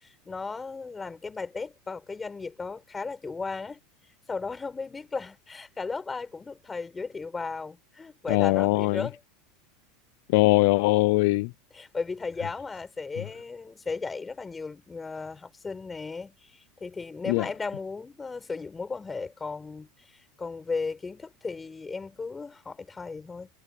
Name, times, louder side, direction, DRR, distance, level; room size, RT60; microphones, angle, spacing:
voice 1, 0.0-3.8 4.3-9.2 11.7-23.5, left 4 dB, 15° left, 5.0 m, -36 dB
voice 2, 8.3-9.1 10.3-11.5 17.3-17.5, left 23 dB, 65° left, 0.5 m, -21 dB
supercardioid pair, 135°, 0 cm